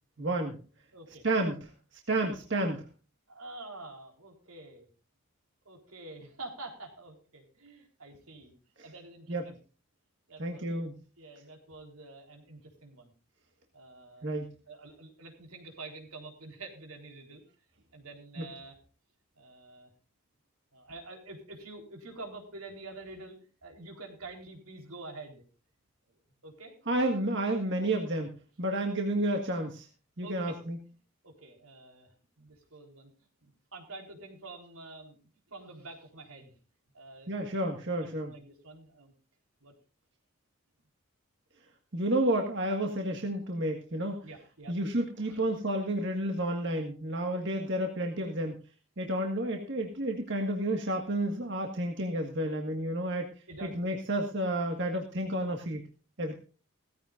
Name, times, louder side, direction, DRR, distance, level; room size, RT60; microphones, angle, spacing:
voice 1, 0.2-0.6 1.2-1.7 2.1-2.8 8.8-8.9 9.3-9.5 10.4-10.9 14.2-14.5 18.4-18.5 26.9-29.9 30.2-30.8 37.3-38.3 41.9-44.2 44.7-48.5 49.0-53.3 53.6-55.9 56.2-56.3, right 1 dB, 50° right, 3 dB, 1.7 m, -31 dB
voice 2, 0.9-1.2 3.3-4.9 5.7-8.5 8.8-9.6 10.3-10.8 11.2-13.1 13.7-14.3 14.7-17.4 17.9-18.8 19.4-19.9 20.7-25.4 26.4-26.8 30.2-30.6 31.2-32.1 32.4-33.1 33.4-35.2 35.5-36.5 36.9-37.6 38.0-39.1 39.6-39.7 44.2-44.8 45.2-45.4 48.2-48.3 53.5-53.7, right 2 dB, 80° right, 3 dB, 4.0 m, -47 dB
17.5 x 15.0 x 2.5 m, 0.35 s
head